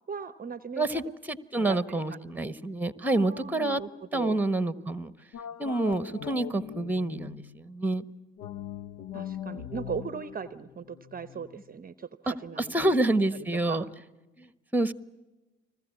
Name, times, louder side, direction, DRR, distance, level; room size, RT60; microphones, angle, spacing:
voice 1, 0.1-1.0 1.6-2.6 3.0-4.4 9.1-12.9 13.3-13.9, right 6 dB, 30° right, 14 dB, 0.8 m, -39 dB
voice 2, 0.8-3.8 4.1-5.1 5.6-8.0 12.7-13.8 14.4-14.9, right 2 dB, 5° right, 14 dB, 1.2 m, -28 dB
sound 1, 5.3-7.6 8.4-11.7, left 9 dB, 65° left, 0.9 m, -41 dB
30.0 x 20.5 x 8.4 m, 1.1 s
figure-of-eight pair, 45°, 30 cm